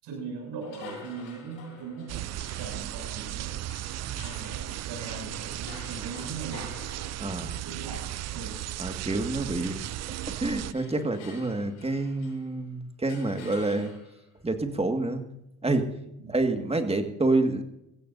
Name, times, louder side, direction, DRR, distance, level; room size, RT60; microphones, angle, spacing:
voice 1, 0.0-3.6 4.2-6.8 7.6-8.7 9.5-9.7 16.2-16.3, right 5 dB, 65° right, 0 dB, 7.3 m, -40 dB
sound 1, 0.6-9.2 9.5-12.6 13.1-14.3, left 4 dB, 80° left, 6.9 m, -50 dB
sound 2, 2.1-10.7, right 14 dB, 35° right, 0.4 m, -36 dB
voice 2, 7.2-7.6 8.8-9.8 10.3-13.9 14.4-15.2 15.6-15.9 16.3-17.6, right 2 dB, 15° right, 6 dB, 1.9 m, -28 dB
22.0 x 15.5 x 2.7 m, 0.85 s
supercardioid pair, 80°, 45 cm